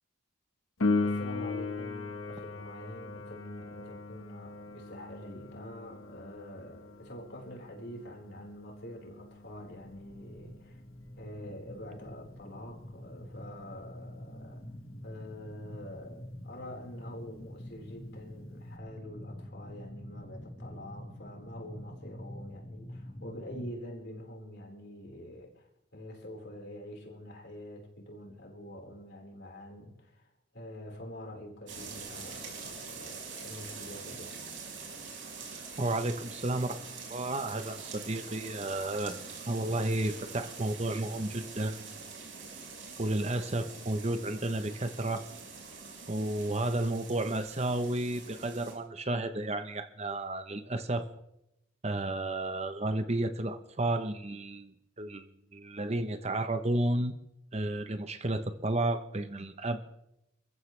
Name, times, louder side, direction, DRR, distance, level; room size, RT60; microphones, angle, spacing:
Piano, 0.8-11.2 18.8-18.9, left 3 dB, 80° left, 1.4 m, -37 dB
voice 1, 1.0-10.8 11.2-14.6 15.0-34.4, left 1 dB, 55° left, 0 dB, 4.6 m, -46 dB
sound 1, 9.6-23.7, left 1 dB, 20° left, 1.2 m, -46 dB
sound 2, 31.7-48.7, right 5 dB, 60° right, 5.2 m, -45 dB
voice 2, 35.8-36.8 37.1-39.2 39.5-41.9 43.0-45.2 46.1-51.1 51.8-54.7 55.0-55.2 55.5-57.1 57.5-59.9, right 1 dB, 30° right, 9 dB, 0.9 m, -32 dB
28.0 x 15.0 x 3.3 m, 0.83 s
head